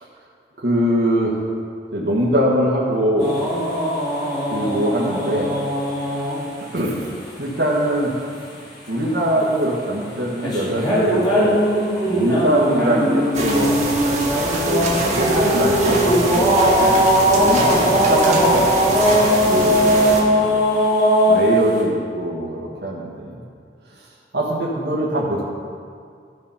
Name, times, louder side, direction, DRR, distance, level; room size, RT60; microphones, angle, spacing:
voice 1, 0.6-1.4 1.9-3.4 4.5-5.5 6.1-6.3 6.7-7.1 7.4-8.2 8.9-11.6 12.0-13.7 14.6-18.7 19.5-20.8 21.3-23.4 24.3-25.4, right 1 dB, 75° right, -5 dB, 1.6 m, -22 dB
sound 1, 3.2-6.4 10.4-21.4, equal, 20° left, 2.4 m, -19 dB
sound 2, 13.3-20.2, right 2 dB, 40° right, 1.6 m, -24 dB
13.5 x 5.2 x 5.7 m, 2.3 s
head